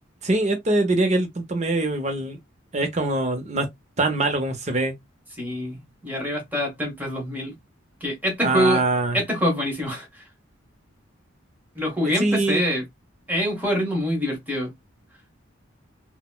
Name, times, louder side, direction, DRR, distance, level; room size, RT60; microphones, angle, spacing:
voice 1, 0.2-2.4 2.7-3.7 4.0-4.9 8.4-9.2 12.2-12.7, right 2 dB, 35° right, 0.6 m, -23 dB
voice 2, 5.4-7.5 8.0-8.8 9.1-10.3 11.7-12.8 13.3-14.7, equal, 10° right, 1.2 m, -25 dB
3.9 x 2.1 x 2.2 m
head